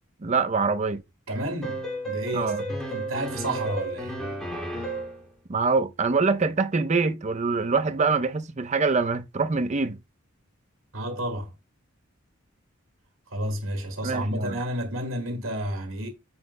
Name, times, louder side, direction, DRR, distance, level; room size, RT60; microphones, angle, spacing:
voice 1, 0.2-1.0 2.3-2.6 5.5-10.0 14.0-14.6, right 4 dB, 35° right, 0.5 m, -24 dB
voice 2, 1.3-4.1 10.9-11.5 13.3-16.1, right 1 dB, 70° right, 1.8 m, -31 dB
sound 1, 1.6-5.2, right 1 dB, ahead, 2.4 m, -32 dB
9.4 x 7.0 x 2.2 m
head